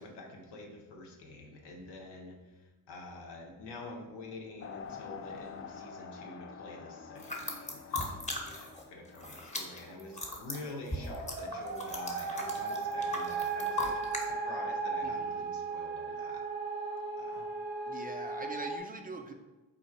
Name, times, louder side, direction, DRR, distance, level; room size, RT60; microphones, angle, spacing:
voice 1, 0.0-2.4 2.9-16.5 17.2-17.4, left 2 dB, 70° left, 1 dB, 0.9 m, -47 dB
sound 1, 4.6-10.5, left 6 dB, 35° left, 0.4 m, -48 dB
sound 2, 7.2-8.8 9.1-14.3, left 2 dB, 15° left, 1.0 m, -38 dB
sound 3, 9.9-18.8, right 4 dB, 70° right, 0.8 m, -36 dB
voice 2, 15.0-15.4 17.9-19.3, right 2 dB, 20° right, 3 dB, 0.5 m, -43 dB
4.0 x 2.5 x 4.2 m, 1.1 s
supercardioid pair, 50°, 42 cm